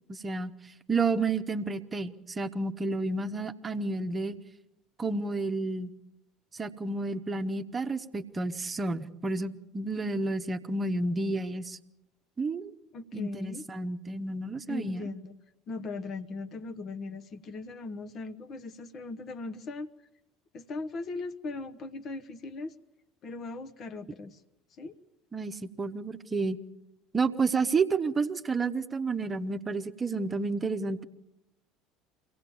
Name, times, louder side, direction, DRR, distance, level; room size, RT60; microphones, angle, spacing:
voice 1, 0.1-0.5 0.9-4.4 5.0-5.9 6.6-11.8 12.4-12.7 13.1-15.0 25.3-26.6 27.1-31.0, right 3 dB, 25° right, 9 dB, 1.0 m, -30 dB
voice 2, 12.9-13.6 14.7-15.4 15.7-19.9 20.5-22.7 23.2-24.4 24.8-24.9, left 3 dB, 40° left, 10 dB, 1.1 m, -38 dB
24.5 x 17.0 x 7.0 m, 0.90 s
figure-of-eight pair, 65°, 0 cm